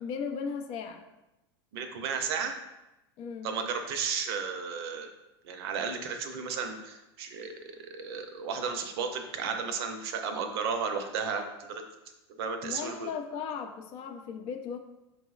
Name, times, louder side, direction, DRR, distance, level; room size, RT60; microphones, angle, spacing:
voice 1, 0.0-1.0 3.2-3.5 12.6-14.8, left 6 dB, 45° left, 5 dB, 0.4 m, -36 dB
voice 2, 1.7-2.5 3.4-5.1 5.4-7.5 7.8-11.8 12.4-13.1, right 5 dB, 70° right, 6 dB, 0.5 m, -33 dB
5.2 x 2.0 x 2.3 m, 0.95 s
hypercardioid pair, 105°, 14 cm